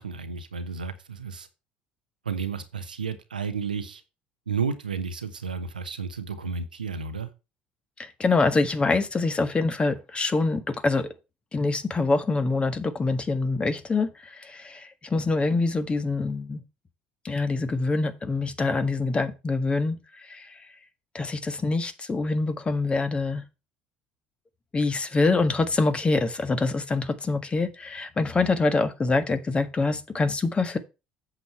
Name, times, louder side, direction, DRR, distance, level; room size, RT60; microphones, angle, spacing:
voice 1, 0.0-1.5 2.2-4.0 4.5-7.3, right 5 dB, 80° right, 1.0 m, -32 dB
voice 2, 8.0-11.1 11.5-16.6 17.2-20.6 21.1-23.4 24.7-30.8, left 3 dB, 25° left, 1.6 m, -25 dB
8.2 x 7.5 x 4.4 m
figure-of-eight pair, 60°, 5 cm